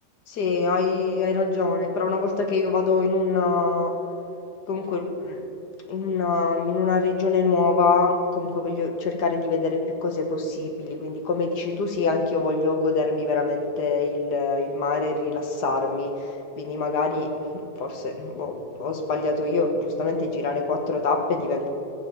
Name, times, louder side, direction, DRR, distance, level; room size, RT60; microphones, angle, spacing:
voice 1, 0.3-3.9 4.7-5.4 5.9-17.3 17.5-21.7, left 4 dB, 85° left, 4 dB, 1.9 m, -24 dB
14.0 x 5.8 x 9.0 m, 2.9 s
omnidirectional pair, 1.7 m